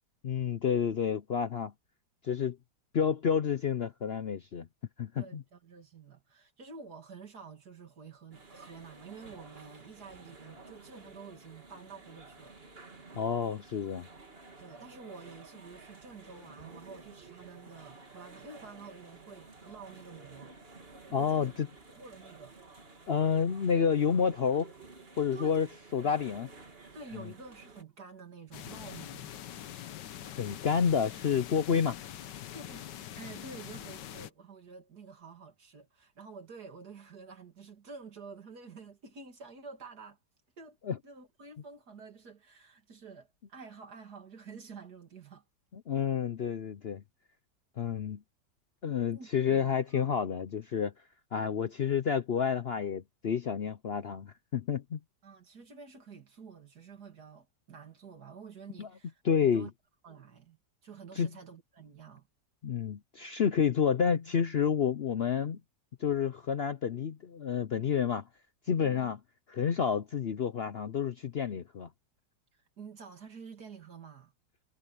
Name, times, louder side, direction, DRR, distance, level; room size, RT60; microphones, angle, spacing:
voice 1, 0.2-1.7 2.2-2.6 2.9-4.7 5.0-5.4 13.2-14.1 21.1-21.7 23.1-24.7 25.2-25.7 25.9-26.5 27.1-27.2 30.2-32.0 40.9-41.0 45.9-47.0 47.8-48.2 48.8-50.9 51.3-55.0 58.8-58.9 59.2-59.7 61.2-61.3 62.6-65.6 66.0-68.2 68.7-69.2 69.5-71.9, left 7 dB, 60° left, 0.6 m, -29 dB
voice 2, 5.2-12.6 14.6-20.6 21.1-21.5 21.9-22.6 25.3-25.6 26.0-26.1 26.9-29.4 32.5-40.2 40.6-40.8 41.0-45.4 49.1-50.1 55.2-59.7 60.0-62.3 68.8-69.1 72.5-74.3, right 5 dB, 65° right, 3.0 m, -49 dB
sound 1, 8.3-27.8, right 3 dB, 35° right, 2.4 m, -53 dB
sound 2, 28.5-34.3, left 11 dB, 80° left, 1.5 m, -44 dB
omnidirectional pair, 1.8 m